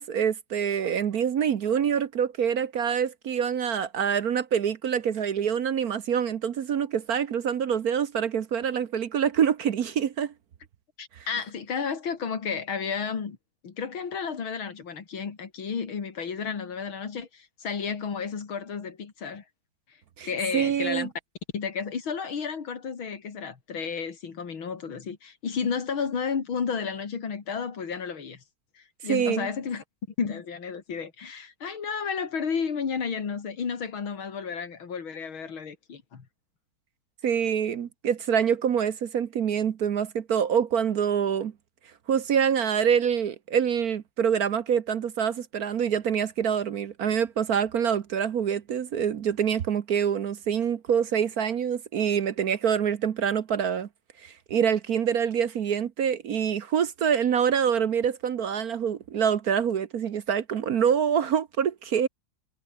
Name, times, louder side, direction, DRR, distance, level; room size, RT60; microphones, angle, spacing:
voice 1, 0.0-10.3 20.2-20.3 20.5-21.1 29.1-29.5 37.2-41.5 42.1-53.9 54.2-62.1, right 8 dB, 55° right, 1.3 m, -26 dB
voice 2, 11.0-13.4 13.6-19.4 20.2-21.1 21.5-28.4 29.0-29.8 30.2-36.3, left 6 dB, 90° left, 3.4 m, -32 dB
omnidirectional pair, 2.2 m